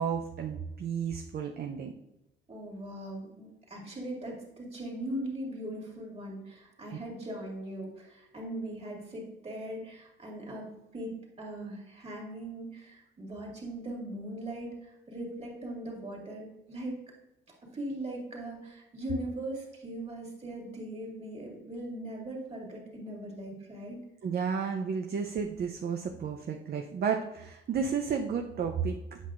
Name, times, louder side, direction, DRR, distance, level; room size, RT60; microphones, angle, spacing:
voice 1, 0.0-1.9 24.2-29.2, right 6 dB, 50° right, 3 dB, 0.6 m, -32 dB
voice 2, 2.5-17.0 17.7-24.0, right 1 dB, 30° right, -2 dB, 2.3 m, -40 dB
8.2 x 5.6 x 2.5 m, 0.92 s
cardioid pair, 90°, 20 cm